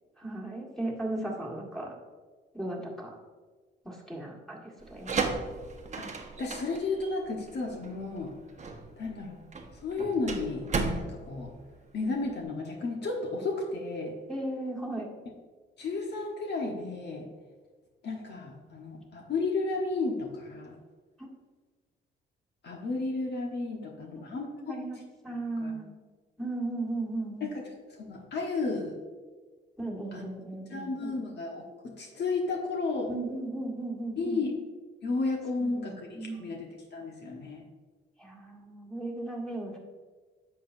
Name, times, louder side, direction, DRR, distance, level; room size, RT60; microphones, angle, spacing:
voice 1, 0.2-2.0 2.5-3.1 3.8-5.4 14.3-15.1 21.2-21.3 24.3-25.9 26.4-27.5 29.8-31.2 33.1-34.4 35.6-36.6 38.2-39.8, right 2 dB, ahead, -4 dB, 1.8 m, -36 dB
sound 1, 4.8-12.4, right 4 dB, 35° right, 1.0 m, -35 dB
voice 2, 6.4-8.3 9.0-9.4 9.8-10.7 10.9-11.5 11.9-14.1 15.8-17.3 18.0-20.7 22.6-24.7 25.6-25.7 27.4-29.0 30.1-30.2 30.7-33.1 34.2-34.5 35.0-37.6, left 3 dB, 60° left, 0 dB, 1.3 m, -33 dB
10.5 x 7.0 x 2.7 m, 1.4 s
cardioid pair, 90°, 20 cm